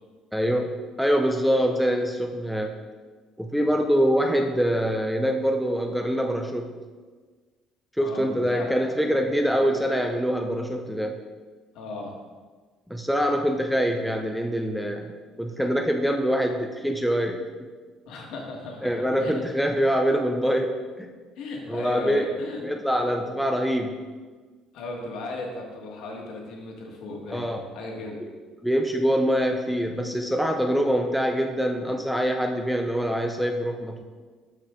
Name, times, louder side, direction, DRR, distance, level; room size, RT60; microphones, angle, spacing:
voice 1, 0.3-2.7 3.4-6.8 8.0-11.2 12.9-15.1 15.4-17.4 18.8-21.1 21.7-22.3 22.6-24.0 27.3-27.6 28.6-34.0, equal, ahead, 3 dB, 0.5 m, -24 dB
voice 2, 8.0-8.7 9.0-9.8 11.7-12.2 18.1-19.4 21.4-22.6 24.7-28.2, left 2 dB, 65° left, 0 dB, 1.7 m, -36 dB
12.5 x 4.6 x 3.7 m, 1.4 s
cardioid pair, 165°, 0 cm